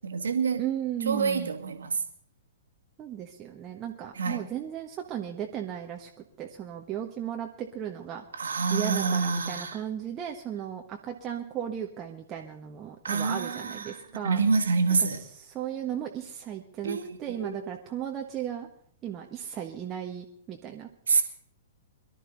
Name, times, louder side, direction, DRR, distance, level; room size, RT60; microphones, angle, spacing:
voice 1, 0.0-0.6 1.1-2.0 4.2-4.4 8.4-9.8 13.0-14.0 14.2-15.2 16.8-17.6 21.1-21.2, right 5 dB, 65° right, 1.9 m, -27 dB
voice 2, 0.6-1.5 3.0-6.1 6.4-8.2 8.7-14.4 15.0-18.7 19.0-20.9, right 10 dB, 25° right, 1.4 m, -36 dB
23.0 x 12.5 x 4.0 m
figure-of-eight pair, 110°, 0 cm